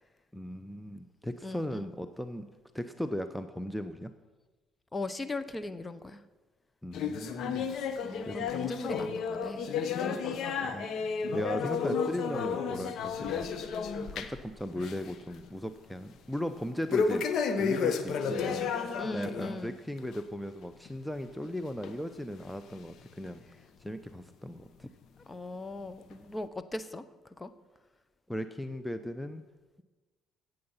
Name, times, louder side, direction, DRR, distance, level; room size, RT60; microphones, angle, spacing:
voice 1, 0.3-2.5 2.7-4.1 6.8-7.8 8.2-8.5 10.6-10.9 11.3-13.5 14.1-17.3 17.6-18.7 19.1-23.4 23.8-24.9 28.3-29.4, equal, 5° left, 9 dB, 0.7 m, -37 dB
voice 2, 1.4-1.9 4.9-6.2 8.0-9.7 18.9-19.8 25.3-27.0 27.4-27.5, left 2 dB, 20° left, 13 dB, 0.9 m, -39 dB
sound 1, 6.9-14.5 14.8-15.1 15.5-15.6 16.9-19.6 20.0-20.2 20.9-21.0 21.8-21.9 22.7-22.8, left 5 dB, 65° left, 1.1 m, -32 dB
16.5 x 7.8 x 5.6 m, 1.2 s
supercardioid pair, 70°, 0 cm